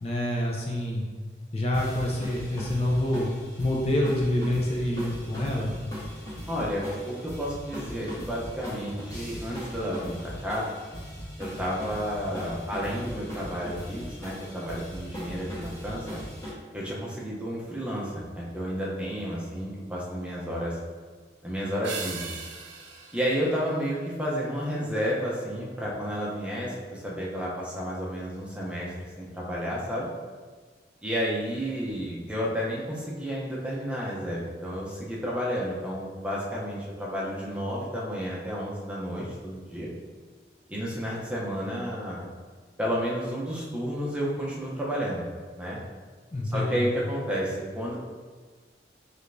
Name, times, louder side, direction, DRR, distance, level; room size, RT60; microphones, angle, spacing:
voice 1, 0.0-1.1 1.5-3.3 3.6-5.7 46.3-46.8, left 1 dB, 35° left, -2 dB, 0.5 m, -27 dB
sound 1, 1.7-16.5, equal, 20° left, 1.1 m, -39 dB
voice 2, 6.5-10.7 11.4-16.2 16.7-20.8 21.4-22.4 23.1-30.1 31.0-39.9 40.7-42.3 42.8-45.2 45.6-45.8 46.5-48.0, equal, 5° right, -5 dB, 0.6 m, -31 dB
sound 2, 21.8-24.5, right 5 dB, 85° right, 0.6 m, -40 dB
5.0 x 3.3 x 2.6 m, 1.5 s
head